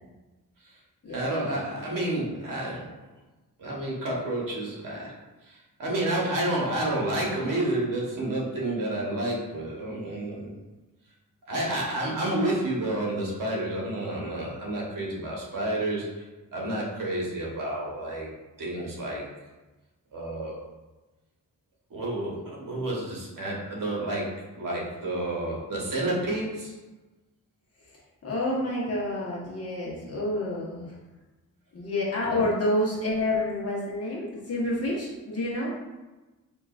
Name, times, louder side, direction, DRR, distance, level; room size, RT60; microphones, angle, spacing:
voice 1, 1.1-3.0 3.6-5.2 5.4-10.5 11.5-16.2 16.5-18.3 18.6-19.3 20.1-20.6 21.9-26.7 32.2-32.4, right 1 dB, 65° right, -4 dB, 1.2 m, -30 dB
voice 2, 27.8-30.9 31.7-35.8, left 1 dB, 45° left, -5 dB, 1.2 m, -29 dB
4.8 x 2.9 x 2.5 m, 1.1 s
wide cardioid pair, 110°, 35 cm